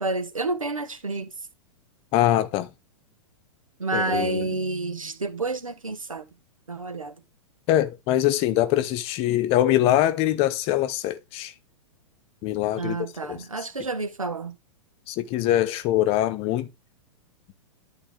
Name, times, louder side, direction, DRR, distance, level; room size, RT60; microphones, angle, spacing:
voice 1, 0.0-1.3 3.8-6.3 6.7-7.1 12.8-14.6, right 3 dB, 85° right, 1.2 m, -29 dB
voice 2, 2.1-2.7 3.9-4.6 7.7-11.5 12.4-13.0 13.2-13.4 15.1-16.7, left 13 dB, 35° left, 1.0 m, -23 dB
11.5 x 4.0 x 3.8 m
figure-of-eight pair, 100°, 17 cm